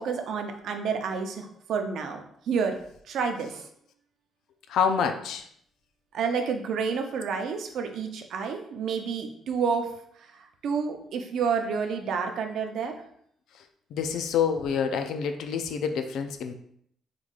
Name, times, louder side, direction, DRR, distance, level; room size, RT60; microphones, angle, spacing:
voice 1, 0.0-2.2 2.5-2.8 3.1-3.6 6.1-9.9 10.3-13.0, right 6 dB, 75° right, 5 dB, 0.5 m, -29 dB
voice 2, 4.7-5.5 13.5-13.6 13.9-16.5, left 7 dB, 80° left, 7 dB, 0.4 m, -27 dB
3.7 x 3.1 x 2.4 m, 0.67 s
cardioid pair, 90°, 0 cm